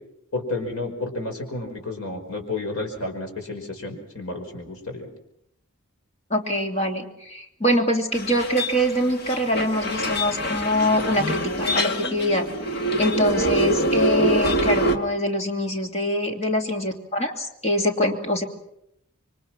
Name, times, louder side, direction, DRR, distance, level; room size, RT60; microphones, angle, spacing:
voice 1, 0.3-5.1, left 2 dB, 85° left, 4 dB, 5.3 m, -31 dB
voice 2, 6.3-12.5 12.7-18.4, equal, 30° left, 3 dB, 2.8 m, -24 dB
sound 1, 8.1-15.0, equal, 50° left, 1.8 m, -25 dB
27.0 x 24.0 x 6.0 m, 0.77 s
head